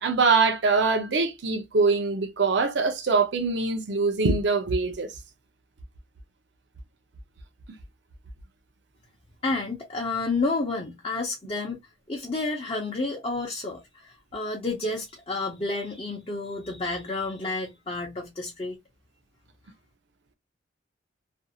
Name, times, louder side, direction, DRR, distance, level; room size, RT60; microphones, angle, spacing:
voice 1, 0.0-5.1, right 4 dB, 65° right, 0.6 m, -23 dB
voice 2, 9.4-11.8 12.1-18.8, left 3 dB, 30° left, 0.6 m, -30 dB
2.5 x 2.3 x 2.7 m
head